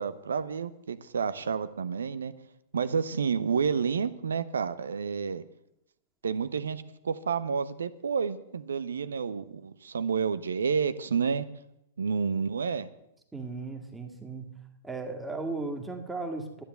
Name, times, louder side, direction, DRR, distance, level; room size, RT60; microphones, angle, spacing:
voice 1, 0.0-2.3 2.7-5.4 6.2-11.5 12.0-12.9, right 6 dB, 65° right, 15 dB, 0.9 m, -30 dB
voice 2, 13.3-14.5 14.8-16.6, right 3 dB, 10° right, 3 dB, 2.1 m, -36 dB
12.5 x 10.0 x 7.9 m, 0.84 s
figure-of-eight pair, 105°, 0 cm